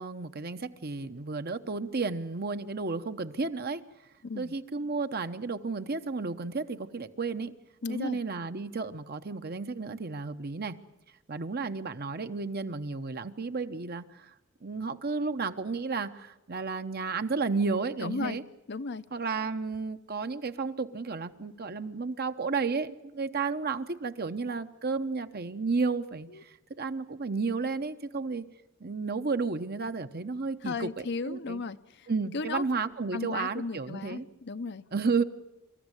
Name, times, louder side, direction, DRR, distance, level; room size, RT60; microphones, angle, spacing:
voice 1, 0.0-3.8 4.3-7.5 7.9-10.7 11.3-14.3 14.6-18.4 19.1-28.4 28.8-31.6 32.1-34.3 34.9-35.2, right 4 dB, 50° right, 9 dB, 1.0 m, -32 dB
voice 2, 4.2-4.6 7.8-8.2 18.0-18.4 18.7-19.0 26.3-26.4 30.6-32.1 32.3-32.7 33.1-34.8, left 4 dB, 55° left, 11 dB, 0.8 m, -35 dB
25.5 x 14.5 x 9.9 m, 0.91 s
head